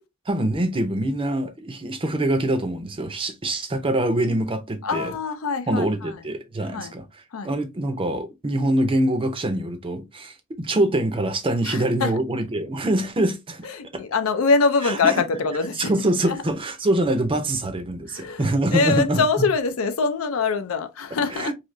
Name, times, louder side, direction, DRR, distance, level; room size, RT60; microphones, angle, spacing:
voice 1, 0.3-5.1 5.7-13.7 13.9-14.0 14.8-15.2 15.8-19.5 21.3-21.5, right 1 dB, 25° right, 0.5 m, -24 dB
voice 2, 4.8-6.1 6.7-6.9 7.3-7.5 11.6-12.1 13.6-15.9 16.3-16.4 18.1-18.4 18.7-21.5, left 4 dB, 75° left, 0.5 m, -23 dB
3.2 x 2.7 x 2.5 m
head